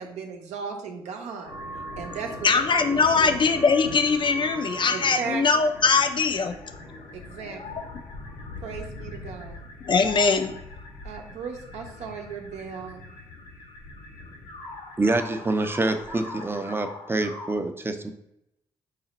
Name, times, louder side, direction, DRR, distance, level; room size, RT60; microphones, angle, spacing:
voice 1, 0.0-1.6 2.0-2.5 3.2-3.4 4.9-5.4 7.1-7.9 8.6-9.6 11.0-13.0, right 5 dB, 75° right, 2 dB, 0.6 m, -36 dB
sound 1, 1.4-17.6, left 1 dB, 85° left, 0.9 m, -40 dB
voice 2, 2.4-6.5 9.8-10.5, left 4 dB, 45° left, 8 dB, 0.5 m, -21 dB
voice 3, 15.0-18.1, right 2 dB, 20° right, 7 dB, 0.5 m, -26 dB
4.1 x 2.1 x 3.9 m, 0.79 s
supercardioid pair, 50°, 12 cm